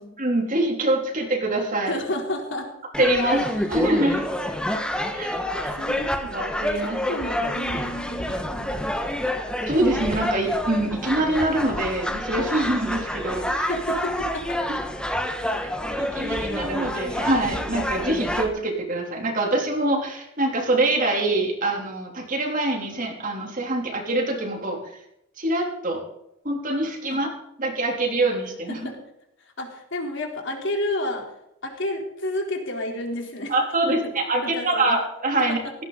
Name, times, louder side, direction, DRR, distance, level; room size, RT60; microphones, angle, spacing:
voice 1, 0.2-1.9 3.0-4.3 5.1-5.7 6.3-7.0 9.7-13.7 16.0-24.8 25.4-26.0 26.4-27.3 27.6-28.9 33.5-35.6, right 2 dB, 40° right, 1 dB, 3.5 m, -24 dB
voice 2, 1.9-2.7 5.2-6.4 6.7-8.8 9.2-9.3 13.5-14.6 27.1-27.2 28.7-29.0 29.6-31.3 31.6-33.5 33.8-33.9 34.4-35.0 35.5-35.6, left 1 dB, 60° left, 2 dB, 4.0 m, -31 dB
sound 1, 2.9-18.5, left 1 dB, 5° left, 1.5 m, -28 dB
17.5 x 16.5 x 4.1 m, 0.81 s
head